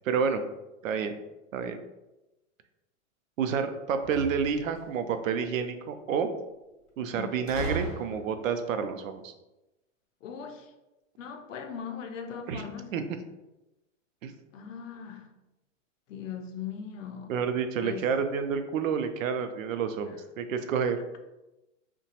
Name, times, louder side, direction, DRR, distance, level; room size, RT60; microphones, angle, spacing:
voice 1, 0.1-0.4 0.8-1.2 1.5-1.8 3.4-6.3 7.0-9.3 12.5-12.6 12.9-13.0 14.2-14.3 17.3-21.0, right 6 dB, 90° right, 0.5 m, -29 dB
sound 1, 4.0-5.0 7.5-8.5, right 2 dB, 35° left, 0.6 m, -36 dB
voice 2, 7.1-7.4 10.2-10.7 11.2-12.9 14.5-15.3 16.1-17.4 17.8-18.1, left 7 dB, 75° left, 0.6 m, -39 dB
2.9 x 2.2 x 2.8 m
hypercardioid pair, 160°, 39 cm